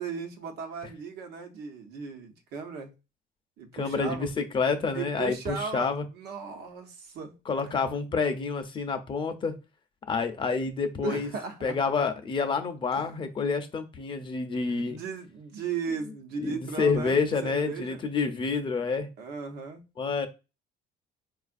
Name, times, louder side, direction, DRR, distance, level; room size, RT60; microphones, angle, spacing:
voice 1, 0.0-2.9 3.6-4.3 4.9-7.3 7.6-7.8 11.0-11.8 12.9-13.1 14.7-18.0 19.2-19.8, right 6 dB, 80° right, 0.9 m, -37 dB
voice 2, 3.7-6.0 7.5-9.5 10.1-11.3 11.6-15.0 16.4-19.1 20.0-20.3, left 4 dB, 30° left, 0.5 m, -28 dB
4.5 x 2.4 x 2.5 m
cardioid pair, 150°, 17 cm